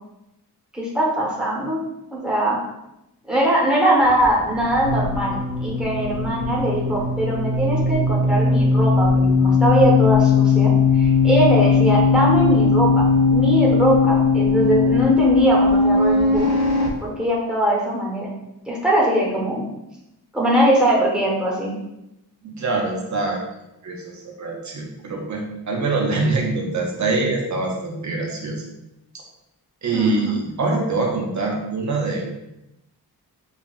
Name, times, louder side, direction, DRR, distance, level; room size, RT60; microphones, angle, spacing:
voice 1, 0.7-1.8 2.1-2.6 3.3-13.0 13.3-16.5 17.0-18.3 18.7-19.7 20.3-21.7 29.9-30.3, right 1 dB, ahead, -4 dB, 0.9 m, -21 dB
sound 1, 4.0-16.9, left 4 dB, 70° left, 0.7 m, -18 dB
voice 2, 22.4-23.4 23.8-28.6 29.8-32.4, right 3 dB, 45° right, 0 dB, 0.7 m, -24 dB
5.4 x 2.4 x 2.3 m, 0.88 s
wide cardioid pair, 160°, 40 cm